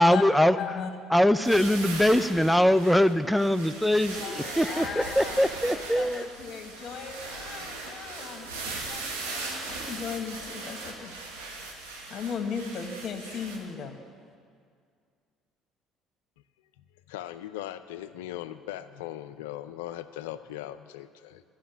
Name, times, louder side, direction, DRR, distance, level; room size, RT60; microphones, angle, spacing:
voice 1, 0.0-0.6 1.1-6.2, left 1 dB, ahead, 13 dB, 0.5 m, -22 dB
voice 2, 0.6-0.9 4.2-11.1 12.1-14.0, left 6 dB, 55° left, 5 dB, 1.4 m, -37 dB
sound 1, 1.4-13.6, right 3 dB, 90° right, 1.5 m, -39 dB
voice 3, 17.1-21.4, left 13 dB, 80° left, 13 dB, 0.4 m, -39 dB
12.0 x 6.4 x 9.2 m, 2.2 s
hypercardioid pair, 65°, 0 cm